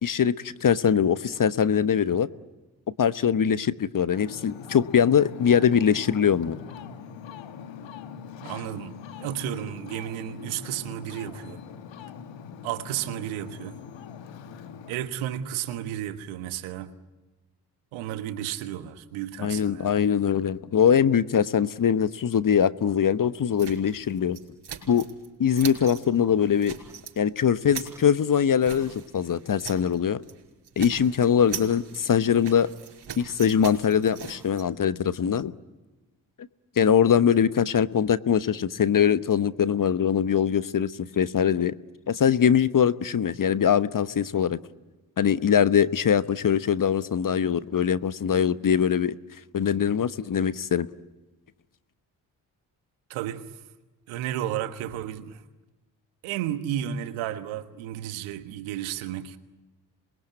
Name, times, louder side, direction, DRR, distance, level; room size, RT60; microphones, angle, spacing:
voice 1, 0.0-2.3 3.0-6.6 19.4-24.4 24.9-25.1 25.4-26.8 27.2-30.2 30.8-32.7 33.2-35.5 36.8-41.7 42.1-44.6 45.2-49.2 49.5-50.9, left 8 dB, 45° left, 1.1 m, -22 dB
Ocean, 4.1-14.9, left 7 dB, 65° left, 1.8 m, -42 dB
voice 2, 8.4-11.6 12.6-13.8 14.9-16.9 17.9-19.9 53.1-53.4 54.1-55.4 56.2-59.4, right 11 dB, 80° right, 1.5 m, -33 dB
sound 1, 23.6-25.3 25.5-26.1 26.4-27.2 27.5-30.0 30.2-30.4 30.6-34.6, right 8 dB, 60° right, 5.4 m, -40 dB
27.0 x 21.5 x 9.2 m
hypercardioid pair, 40°, 47 cm